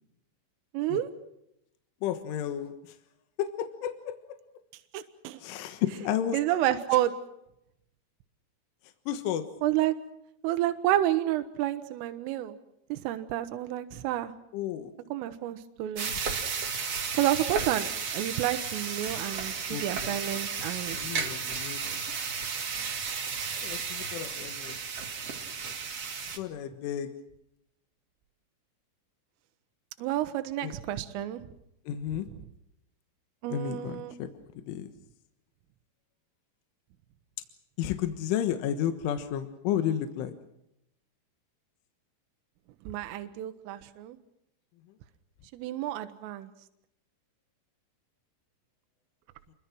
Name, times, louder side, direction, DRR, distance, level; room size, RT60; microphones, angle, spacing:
voice 1, 0.7-1.1 4.9-5.4 6.3-7.2 9.6-10.0 10.4-12.6 12.9-14.3 15.1-16.1 17.2-21.0 30.0-31.4 33.4-34.2 42.9-44.2 45.5-46.5, right 13 dB, 80° right, 9 dB, 3.7 m, -30 dB
voice 2, 2.0-2.9 3.4-4.4 5.4-6.6 9.1-9.4 14.5-14.9 19.7-20.2 20.9-21.8 23.6-24.8 26.4-27.1 30.6-30.7 31.9-32.3 33.5-34.3 34.7-34.9 37.8-40.3, left 10 dB, 75° left, 9 dB, 3.8 m, -32 dB
sound 1, 16.0-26.4, right 6 dB, 40° right, 2.7 m, -33 dB
29.0 x 23.5 x 6.2 m, 0.80 s
omnidirectional pair, 5.8 m